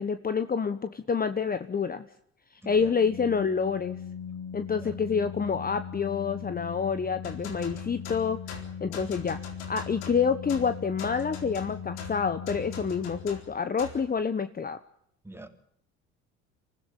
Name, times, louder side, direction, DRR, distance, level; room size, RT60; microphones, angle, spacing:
voice 1, 0.0-2.0 2.6-4.0 4.5-8.4 8.8-9.4 9.7-14.8, left 6 dB, 25° left, 11 dB, 1.3 m, -28 dB
Organ, 2.9-13.7, left 7 dB, 60° left, 3.6 m, -40 dB
voice 2, 4.8-5.3 15.2-15.5, right 1 dB, 5° right, 7 dB, 3.4 m, -46 dB
sound 1, 7.2-14.1, left 5 dB, 85° left, 4.1 m, -43 dB
25.0 x 16.0 x 9.2 m, 0.70 s
hypercardioid pair, 70°, 33 cm